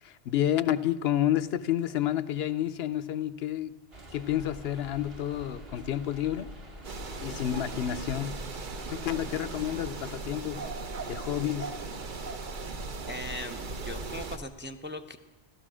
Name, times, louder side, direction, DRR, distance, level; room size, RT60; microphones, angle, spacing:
voice 1, 0.0-3.7 4.1-6.5 7.2-8.4 8.9-10.7 11.1-11.7, left 11 dB, 75° left, 15 dB, 0.8 m, -30 dB
sound 1, 3.9-9.9, equal, 30° right, 1.2 m, -46 dB
sound 2, 6.8-14.4, right 3 dB, 50° right, 1.0 m, -38 dB
voice 2, 13.1-15.2, left 1 dB, 15° right, 5 dB, 0.5 m, -39 dB
15.5 x 12.5 x 6.2 m, 1.3 s
omnidirectional pair, 1.1 m